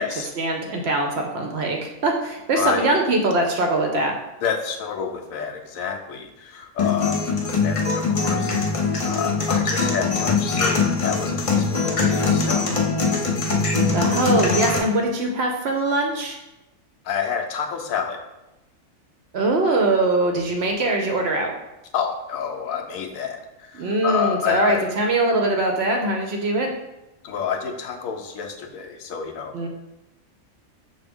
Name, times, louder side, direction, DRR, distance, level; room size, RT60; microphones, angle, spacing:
voice 1, 0.0-4.1 13.9-16.4 19.3-21.5 23.7-26.7 29.5-29.7, right 2 dB, 60° right, 2 dB, 0.7 m, -22 dB
voice 2, 2.5-3.0 4.4-8.5 9.0-12.8 17.0-18.2 21.9-24.8 27.2-29.5, left 7 dB, 85° left, 4 dB, 1.0 m, -28 dB
sound 1, 6.8-14.8, left 4 dB, 60° left, 0.3 m, -22 dB
5.8 x 2.6 x 3.5 m, 0.96 s
omnidirectional pair, 1.4 m